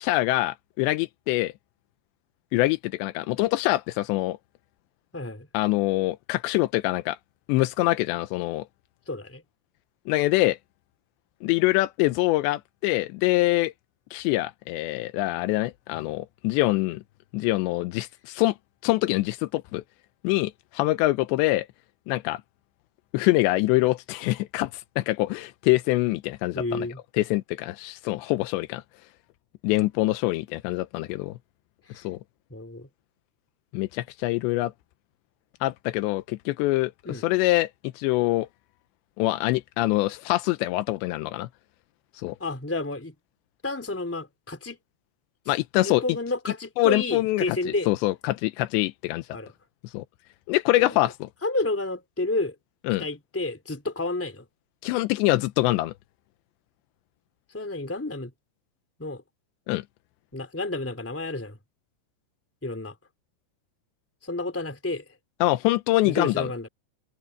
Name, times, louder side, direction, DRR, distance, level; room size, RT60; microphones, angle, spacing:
voice 1, 0.0-1.5 2.5-4.4 5.5-7.2 7.5-8.6 10.1-10.6 11.4-13.7 14.1-17.0 17.3-18.6 18.8-19.8 20.2-21.7 22.1-22.4 23.1-26.9 27.2-28.8 29.6-31.4 32.0-32.2 33.7-34.7 35.6-38.5 39.2-41.5 42.2-42.4 45.5-46.0 46.8-47.6 47.9-49.3 49.9-50.0 50.5-51.3 52.9-53.0 54.8-55.9 59.7-59.8 65.4-66.5, left 18 dB, 90° left, 3.0 m, -24 dB
voice 2, 5.1-5.5 9.1-9.4 26.5-27.0 31.9-32.1 32.5-32.9 37.0-37.2 42.4-43.1 43.6-44.8 45.4-45.5 45.8-47.9 49.3-49.5 50.8-51.0 51.4-52.5 53.0-54.4 57.5-58.3 59.0-59.2 60.3-61.6 62.6-62.9 64.2-65.0 66.0-66.7, left 2 dB, 5° left, 3.3 m, -30 dB
omnidirectional pair, 5.0 m